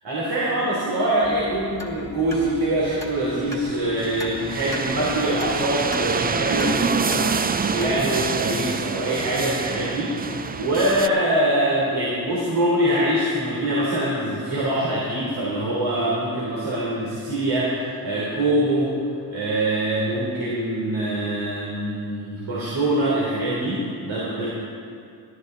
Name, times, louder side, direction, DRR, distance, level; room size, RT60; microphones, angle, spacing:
voice 1, 0.0-19.0 19.3-24.5, right 1 dB, 60° right, -6 dB, 3.6 m, -24 dB
sound 1, 1.2-8.3, left 1 dB, 5° left, 2.2 m, -38 dB
sound 2, 3.2-11.1, right 5 dB, 20° right, 0.5 m, -27 dB
16.5 x 13.0 x 4.0 m, 2.4 s
supercardioid pair, 65°, 47 cm